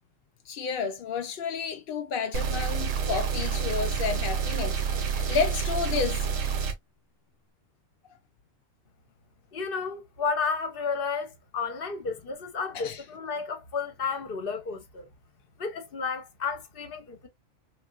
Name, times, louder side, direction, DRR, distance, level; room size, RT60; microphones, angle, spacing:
voice 1, 0.5-6.3 12.7-13.0, left 6 dB, 70° left, 0.5 m, -31 dB
sound 1, 2.3-6.7, right 6 dB, 70° right, 1.1 m, -28 dB
voice 2, 9.5-15.1 15.6-17.3, left 5 dB, 50° left, 0.9 m, -32 dB
3.6 x 2.5 x 2.2 m
omnidirectional pair, 1.4 m